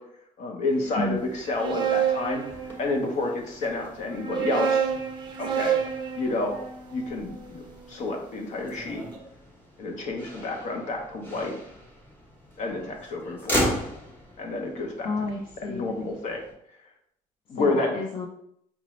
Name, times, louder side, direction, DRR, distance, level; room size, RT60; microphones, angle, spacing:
voice 1, 0.4-1.2 1.5-2.4 2.8-4.9 5.4-5.7 6.2-6.6 6.9-9.0 9.8-11.6 12.6-13.7 14.4-15.1 15.7-16.4 17.5-17.9, left 2 dB, 60° left, 2 dB, 0.9 m, -29 dB
Motor vehicle (road), 0.7-16.5, equal, 15° left, 1.0 m, -38 dB
sound 1, 1.3-3.2 4.0-8.2, right 8 dB, 35° right, 0.5 m, -29 dB
voice 2, 15.0-16.0 17.5-18.3, left 2 dB, 40° left, -1 dB, 0.5 m, -31 dB
5.0 x 2.7 x 3.1 m, 0.73 s
cardioid pair, 175°, 14 cm